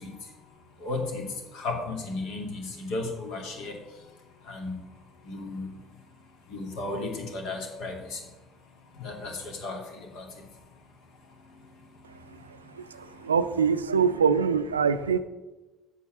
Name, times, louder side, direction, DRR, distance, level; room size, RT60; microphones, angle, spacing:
voice 1, 0.0-13.3, left 3 dB, 55° left, 2 dB, 2.5 m, -37 dB
voice 2, 13.2-15.2, right 6 dB, 80° right, 13 dB, 0.5 m, -23 dB
8.5 x 7.1 x 7.5 m, 1.1 s
figure-of-eight pair, 55°, 0 cm